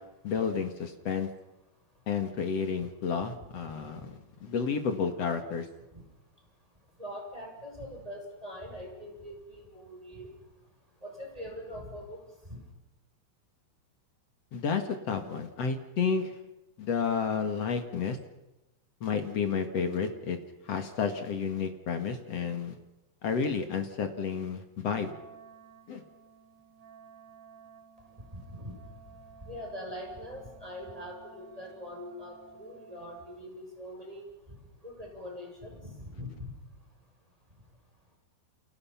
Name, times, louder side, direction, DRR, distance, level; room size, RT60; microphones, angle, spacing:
voice 1, 0.2-1.3 2.1-5.7 14.5-16.3 16.8-18.2 19.0-20.4 20.7-22.7 23.2-25.1 25.9-26.0, left 6 dB, 45° left, 7 dB, 2.3 m, -31 dB
voice 2, 7.0-10.3 11.0-12.2 12.5-12.6 28.3-28.8 29.5-34.2 34.8-36.5, equal, 10° right, 1 dB, 7.4 m, -42 dB
Wind instrument woodwind instrument, 24.9-33.3, right 6 dB, 65° right, 6.3 m, -55 dB
30.0 x 29.0 x 5.9 m, 0.95 s
omnidirectional pair, 4.9 m